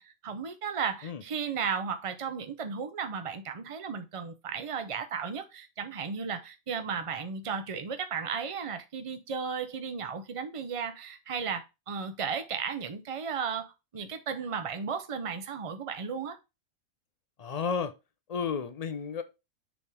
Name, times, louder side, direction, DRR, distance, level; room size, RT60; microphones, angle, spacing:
voice 1, 0.0-16.4, right 6 dB, 50° right, 0.3 m, -35 dB
voice 2, 17.4-17.9 18.3-19.2, left 6 dB, 60° left, 0.4 m, -32 dB
7.0 x 3.6 x 4.8 m
omnidirectional pair, 1.5 m